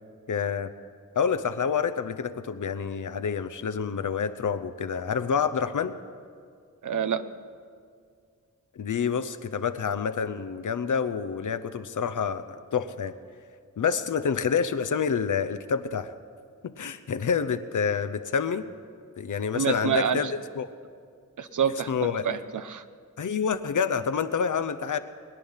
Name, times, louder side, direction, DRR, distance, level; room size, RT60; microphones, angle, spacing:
voice 1, 0.3-0.7 1.2-6.0 8.8-13.1 13.8-16.1 16.6-18.7 19.2-20.7 21.9-22.3 23.2-25.0, left 6 dB, 75° left, 10 dB, 0.8 m, -28 dB
voice 2, 6.8-7.2 19.5-20.3 21.4-21.9 22.2-22.8, right 7 dB, 75° right, 11 dB, 0.8 m, -27 dB
21.5 x 10.5 x 5.7 m, 2.2 s
wide cardioid pair, 80°, 31 cm